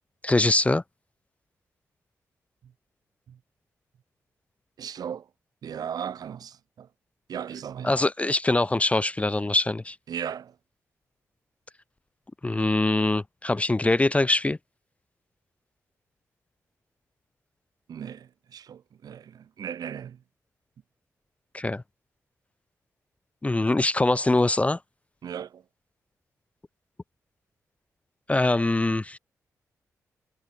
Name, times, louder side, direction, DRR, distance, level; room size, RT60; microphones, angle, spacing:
voice 1, 0.2-0.8 7.8-10.0 12.4-14.6 21.5-21.8 23.4-24.8 28.3-29.2, left 2 dB, 20° left, 0.5 m, -23 dB
voice 2, 4.8-5.3 5.6-6.9 7.3-7.9 10.1-10.6 17.9-20.2 25.2-25.6, right 8 dB, 75° right, 4.9 m, -37 dB
supercardioid pair, 50°, 7 cm